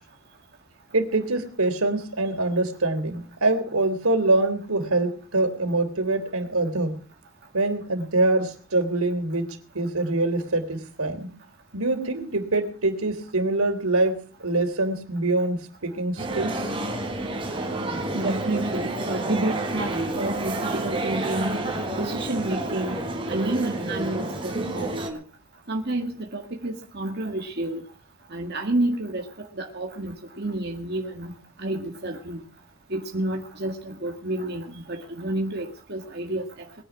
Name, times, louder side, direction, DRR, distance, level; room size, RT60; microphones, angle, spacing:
voice 1, 0.9-6.9 7.5-11.3 11.7-16.7, right 2 dB, 75° right, 6 dB, 3.5 m, -24 dB
sound 1, 16.2-25.1, right 2 dB, 25° right, 3.7 m, -29 dB
voice 2, 18.1-21.6 21.9-23.0 23.3-25.2 25.7-27.8 28.3-31.3 31.6-32.4 32.9-36.5, right 1 dB, 45° right, 1 dB, 1.9 m, -29 dB
21.5 x 10.5 x 6.0 m, 0.40 s
head